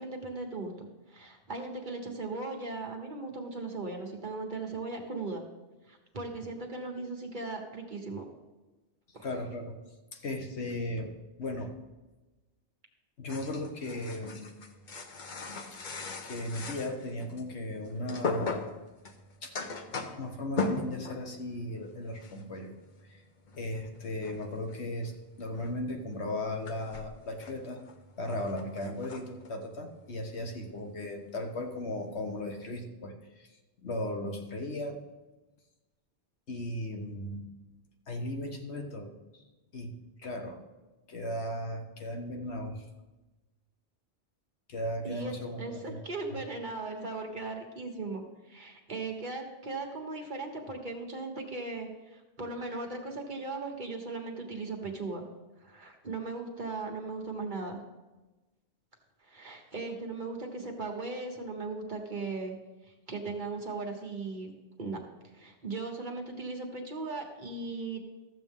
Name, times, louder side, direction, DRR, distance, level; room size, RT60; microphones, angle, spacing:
voice 1, 0.0-5.4 5.9-8.2 9.1-9.3 45.0-55.2 55.6-57.8 59.2-62.5 62.8-64.5 64.8-65.0 65.3-68.0, right 3 dB, 45° right, 1 dB, 1.4 m, -38 dB
voice 2, 9.2-9.8 10.1-11.7 13.2-14.5 15.7-15.9 16.2-18.6 19.4-19.6 20.2-22.8 23.1-23.2 23.6-25.1 25.4-27.8 28.2-33.5 33.8-35.0 36.5-37.4 38.1-39.4 39.7-39.9 40.2-40.6 41.1-42.8 44.7-45.8 46.4-46.5, left 1 dB, 70° left, 4 dB, 1.4 m, -36 dB
sound 1, 13.3-17.5 17.8-21.4 21.6-21.9 22.2-22.6 22.8-30.8 31.1-31.5 31.7-32.7, left 3 dB, 45° left, 0.9 m, -39 dB
13.5 x 7.7 x 3.6 m, 1.1 s
omnidirectional pair, 1.2 m